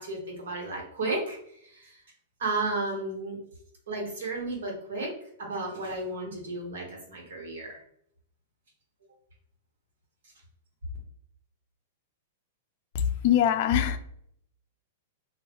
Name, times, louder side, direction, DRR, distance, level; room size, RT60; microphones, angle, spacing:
voice 1, 0.0-1.4 1.6-2.0 2.4-3.4 3.9-5.1 5.4-7.8, right 2 dB, 85° right, 0 dB, 1.1 m, -33 dB
voice 2, 12.9-14.0, left 9 dB, 50° left, 9 dB, 0.3 m, -23 dB
2.3 x 2.0 x 3.5 m, 0.70 s
supercardioid pair, 155°, 0 cm